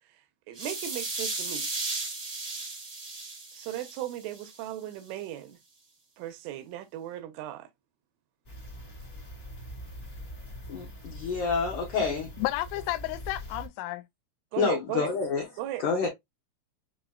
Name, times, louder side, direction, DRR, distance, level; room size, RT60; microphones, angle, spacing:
Tsch Delay, 0.5-4.6, right 3 dB, 35° right, 1.8 m, -35 dB
voice 1, 0.5-1.7 3.5-5.6 6.2-7.7 14.5-15.1 15.6-15.9, right 13 dB, 90° right, 3.3 m, -37 dB
sound 1, 8.4-13.7, equal, 25° left, 1.7 m, -43 dB
voice 2, 10.7-12.3 14.6-15.5 15.8-16.1, left 5 dB, 65° left, 2.1 m, -28 dB
voice 3, 12.4-14.1, left 17 dB, 85° left, 3.0 m, -32 dB
7.2 x 3.0 x 2.4 m
omnidirectional pair, 5.6 m